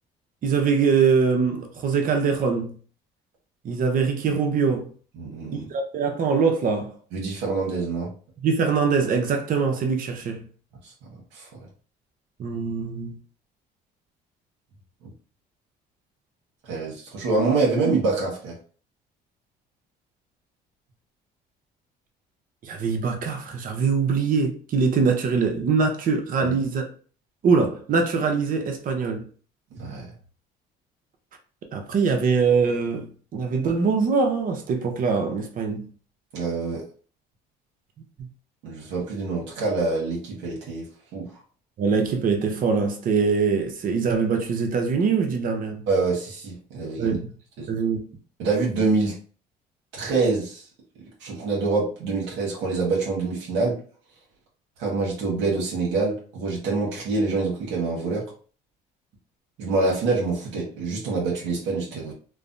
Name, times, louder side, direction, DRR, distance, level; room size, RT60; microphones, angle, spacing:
voice 1, 0.4-2.7 3.6-4.9 5.7-6.9 8.4-10.4 12.4-13.2 22.6-26.9 27.4-29.2 31.7-35.9 41.8-45.9 47.0-47.3 47.7-48.0, right 5 dB, 50° right, 0.7 m, -23 dB
voice 2, 5.2-5.7 7.1-8.1 11.3-11.5 16.6-18.5 26.4-26.5 29.7-30.1 36.3-36.8 38.6-40.8 41.1-41.3 45.9-47.2 47.6-47.7 48.4-49.1 49.9-50.6 51.2-53.8 54.8-58.2 59.6-62.1, right 3 dB, 80° right, 1.0 m, -25 dB
3.2 x 2.0 x 2.6 m
cardioid pair, 105°, 18 cm